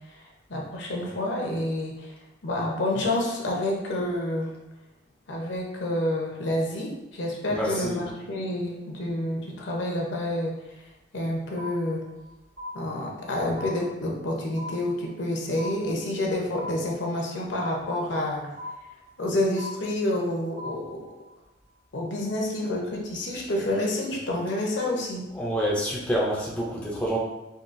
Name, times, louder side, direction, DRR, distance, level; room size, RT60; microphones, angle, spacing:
voice 1, 0.5-2.1 2.4-4.5 5.3-10.5 11.1-12.0 12.7-18.5 19.2-21.1 21.9-25.2, left 1 dB, 65° left, -1 dB, 0.7 m, -28 dB
voice 2, 7.5-8.0 25.3-27.2, equal, 5° left, -5 dB, 0.4 m, -27 dB
sound 1, 11.6-12.3 12.6-13.3 13.6-14.3 14.6-15.3 15.6-16.3 16.6-17.3 17.6-18.3 18.6-19.3 19.6-20.3 20.6-21.3, left 2 dB, 80° right, 0.9 m, -39 dB
3.7 x 2.3 x 2.5 m, 0.97 s
head